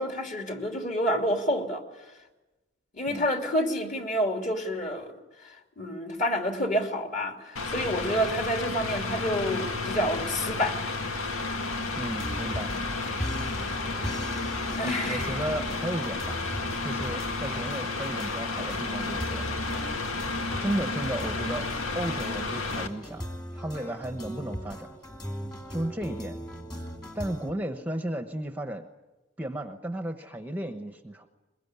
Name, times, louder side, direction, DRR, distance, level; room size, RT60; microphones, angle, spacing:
voice 1, 0.0-1.8 2.9-5.1 5.4-10.8 14.8-15.4, equal, 35° left, 4 dB, 3.0 m, -29 dB
Mechanical fan, 7.6-22.9, left 3 dB, 85° left, 2.0 m, -32 dB
voice 2, 11.9-12.7 14.8-16.4 16.8-19.5 20.6-21.7 21.9-23.2 23.5-25.0 25.7-26.4 27.1-28.8 29.4-31.3, right 1 dB, 10° right, 6 dB, 1.0 m, -34 dB
sound 1, 12.1-27.5, equal, 20° left, 2.5 m, -39 dB
22.5 x 22.0 x 9.6 m, 1.1 s
head